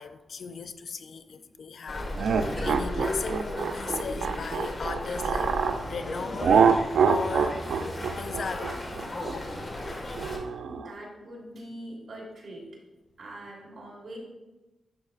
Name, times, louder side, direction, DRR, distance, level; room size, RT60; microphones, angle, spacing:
voice 1, 0.0-5.6 5.8-6.7 7.0-7.6 8.2-8.8 9.2-9.7, left 5 dB, 65° left, 0.4 m, -37 dB
sound 1, 1.9-10.4, left 1 dB, 35° left, 1.6 m, -35 dB
sound 2, 2.2-5.8 6.4-10.9, right 6 dB, 80° right, 0.4 m, -25 dB
voice 2, 10.6-12.6 13.2-14.2, right 1 dB, 55° right, 2.8 m, -43 dB
10.5 x 6.3 x 2.4 m
wide cardioid pair, 105°, 0 cm